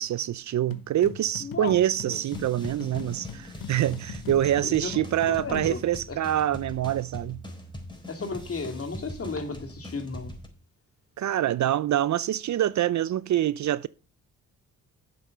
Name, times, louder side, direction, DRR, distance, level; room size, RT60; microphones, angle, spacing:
voice 1, 0.0-7.4 11.2-13.9, right 12 dB, 55° right, 0.5 m, -25 dB
sound 1, 0.7-5.8, left 8 dB, 75° left, 1.1 m, -41 dB
voice 2, 1.4-1.8 2.0-2.2 4.6-5.0 5.3-5.8 6.1-6.2 8.1-10.3, left 4 dB, 40° left, 2.7 m, -34 dB
sound 2, 2.1-10.5, equal, 15° left, 4.0 m, -42 dB
8.0 x 7.6 x 6.7 m
supercardioid pair, 60°, 34 cm